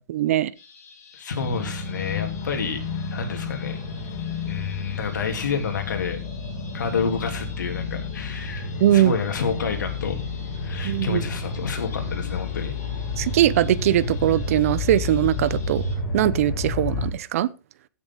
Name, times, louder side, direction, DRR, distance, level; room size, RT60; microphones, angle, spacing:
voice 1, 0.1-0.5 8.8-9.1 10.8-11.2 13.2-15.8 16.1-17.5, right 12 dB, 50° right, 0.6 m, -21 dB
sound 1, 0.5-16.0, left 3 dB, 55° left, 6.4 m, -49 dB
voice 2, 1.2-2.8 3.1-3.8 4.5-6.2 6.7-10.2 10.6-12.8, left 5 dB, 75° left, 3.2 m, -29 dB
sound 2, 1.4-17.1, left 4 dB, 35° left, 2.3 m, -31 dB
15.5 x 7.1 x 3.9 m
hypercardioid pair, 150°, 10 cm